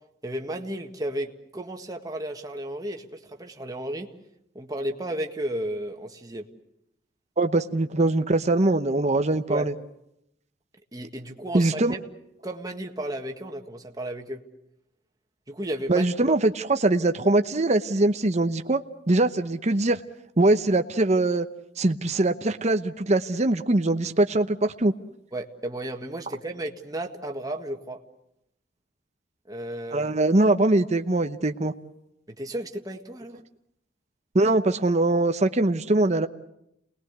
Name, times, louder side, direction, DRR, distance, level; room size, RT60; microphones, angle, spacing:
voice 1, 0.2-4.1 4.6-6.5 9.5-9.7 10.9-12.0 12.4-14.4 15.5-16.4 25.3-28.0 29.5-30.1 32.4-33.4, right 1 dB, 20° right, 3 dB, 1.7 m, -33 dB
voice 2, 7.4-9.7 11.5-11.9 15.9-18.8 19.1-20.0 20.4-21.5 21.8-24.9 29.9-31.7 34.3-36.3, right 2 dB, 40° right, 7 dB, 0.9 m, -22 dB
29.0 x 20.0 x 8.1 m, 0.83 s
head